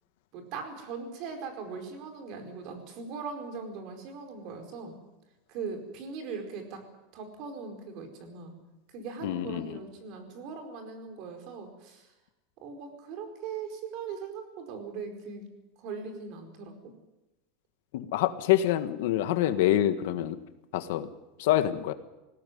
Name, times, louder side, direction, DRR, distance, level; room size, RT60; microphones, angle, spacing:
voice 1, 0.3-5.0 5.5-6.8 7.1-8.5 8.9-12.1 12.6-15.5 15.8-16.9, right 5 dB, 45° right, 6 dB, 4.7 m, -40 dB
voice 2, 9.2-9.8 17.9-20.4 20.7-21.1 21.4-21.9, left 12 dB, 70° left, 10 dB, 1.5 m, -26 dB
20.5 x 16.5 x 9.4 m, 0.97 s
supercardioid pair, 165°, 0 cm